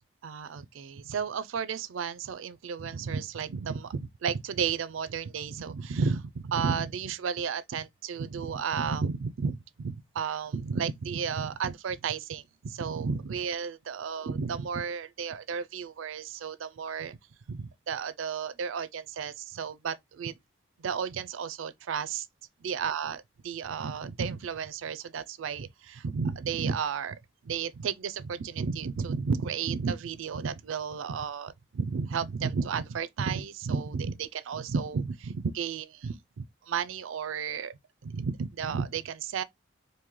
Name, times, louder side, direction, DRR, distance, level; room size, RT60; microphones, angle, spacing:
voice 1, 0.2-17.2 17.5-20.3 20.8-22.3 22.6-37.7 38.0-39.4, right 6 dB, 80° right, 0.4 m, -33 dB
3.0 x 2.6 x 3.7 m
head